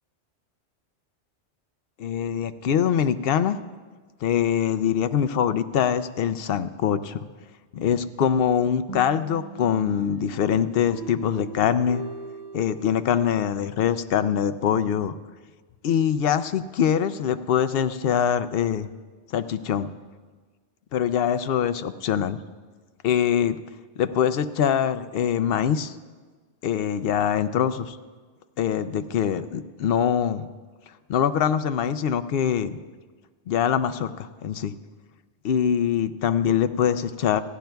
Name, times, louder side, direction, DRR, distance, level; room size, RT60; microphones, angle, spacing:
voice 1, 2.0-3.6 4.2-7.2 7.7-12.0 12.5-15.1 15.8-18.9 19.3-19.9 20.9-22.4 23.0-23.6 24.0-25.9 26.6-28.0 28.6-30.4 31.1-32.8 33.5-34.7 35.4-37.4, left 8 dB, 65° left, 11 dB, 0.7 m, -23 dB
sound 1, 8.9-13.6, right 4 dB, 20° left, 3.3 m, -39 dB
30.0 x 10.5 x 2.3 m, 1.4 s
omnidirectional pair, 1.2 m